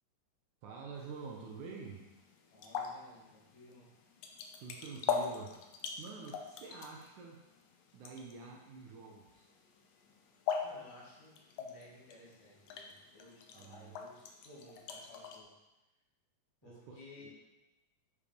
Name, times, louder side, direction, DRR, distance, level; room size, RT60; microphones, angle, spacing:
voice 1, 0.6-2.1 4.6-5.5 6.0-7.4 7.9-9.5 13.5-14.0 16.6-17.3, right 4 dB, 70° right, 0 dB, 2.1 m, -48 dB
sound 1, 1.0-15.4, left 6 dB, 70° left, 1.9 m, -43 dB
voice 2, 2.5-3.9 10.6-15.5 16.6-17.3, left 2 dB, 55° left, -6 dB, 3.3 m, -56 dB
8.7 x 5.2 x 5.1 m, 1.0 s
omnidirectional pair, 4.0 m